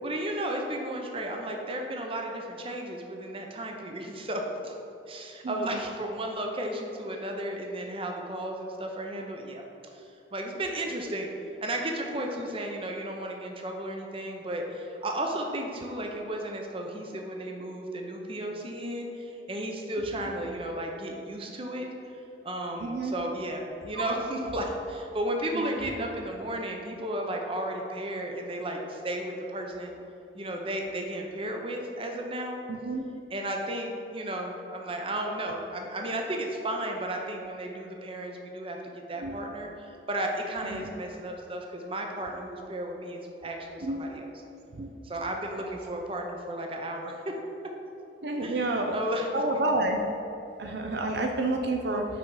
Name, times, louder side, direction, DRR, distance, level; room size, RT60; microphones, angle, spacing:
voice 1, 0.0-4.7 5.1-9.6 9.9-11.3 11.6-21.9 22.4-30.0 30.3-32.6 33.3-38.8 39.1-44.3 45.0-47.4 48.4-49.4, right 1 dB, 30° right, 2 dB, 0.7 m, -34 dB
voice 2, 5.4-5.8 22.8-23.2 25.5-25.7 32.7-33.0 39.2-39.4 40.7-40.9 43.8-44.0 44.7-44.9 48.2-49.0 49.3-50.0 50.6-52.2, right 2 dB, 65° right, 3 dB, 0.5 m, -29 dB
6.1 x 5.4 x 4.7 m, 2.8 s
head